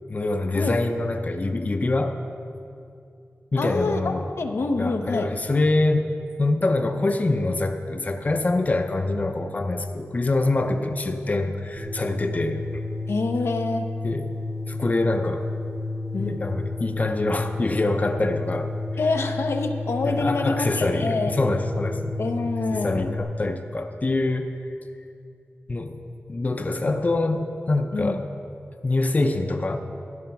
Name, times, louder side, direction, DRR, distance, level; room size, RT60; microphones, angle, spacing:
voice 1, 0.1-2.2 3.5-4.3 4.8-6.1 6.4-12.6 14.0-14.3 14.7-15.5 16.2-18.7 20.0-22.2 22.7-24.5 25.7-26.0 26.3-28.3 28.8-29.8, left 2 dB, 35° left, 6 dB, 0.6 m, -25 dB
voice 2, 3.5-5.3 13.1-13.9 16.1-16.4 19.0-21.3 22.2-23.2 27.9-28.2, left 3 dB, 80° left, 4 dB, 0.7 m, -26 dB
sound 1, 11.8-23.2, left 2 dB, 25° right, 1.0 m, -31 dB
13.0 x 8.6 x 5.9 m, 2.5 s
wide cardioid pair, 95°, 4 cm